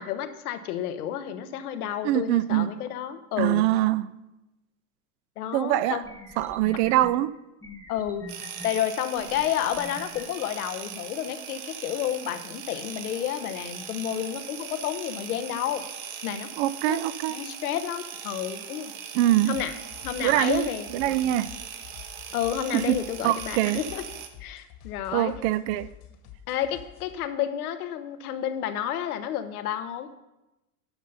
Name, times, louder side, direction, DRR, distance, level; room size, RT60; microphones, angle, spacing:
voice 1, 0.0-3.6 5.4-6.0 7.9-8.3 8.6-15.8 16.2-16.5 16.8-17.0 17.3-18.9 19.5-19.7 20.0-21.3 22.3-24.0 24.4-25.3 26.5-30.1, left 10 dB, 85° left, 9 dB, 1.0 m, -30 dB
voice 2, 2.0-2.7 3.4-4.1 5.5-6.0 6.4-7.3 16.6-17.4 19.1-19.6 20.2-21.5 22.7-23.8 25.1-25.9, right 14 dB, 50° right, 17 dB, 0.4 m, -24 dB
sound 1, 5.5-5.6 6.0-7.1 7.6-8.7 9.2-10.2, left 2 dB, 5° left, 1.2 m, -44 dB
sound 2, 8.3-24.3, right 8 dB, 70° right, 1.2 m, -40 dB
sound 3, 19.5-27.2, left 10 dB, 45° left, 1.4 m, -48 dB
10.5 x 5.5 x 5.4 m, 0.97 s
supercardioid pair, 125°, 43 cm